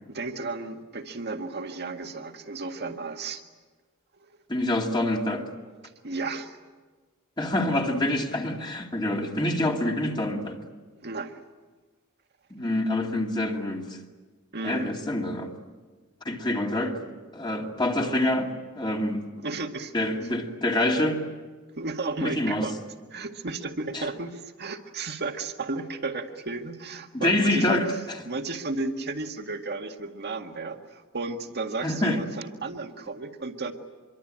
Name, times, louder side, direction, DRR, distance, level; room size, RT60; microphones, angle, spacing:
voice 1, 0.1-3.4 4.2-4.3 6.0-6.6 10.9-11.4 14.5-15.0 19.4-19.9 21.7-22.8 23.1-27.8 28.2-33.7, right 3 dB, 50° right, 6 dB, 1.9 m, -33 dB
voice 2, 4.5-5.5 7.4-10.6 12.5-13.9 14.6-15.5 16.2-19.2 19.9-21.2 22.2-22.7 23.9-24.0 27.1-27.9 31.8-32.2, left 1 dB, 20° left, 1 dB, 2.4 m, -26 dB
25.5 x 23.5 x 8.9 m, 1.4 s
head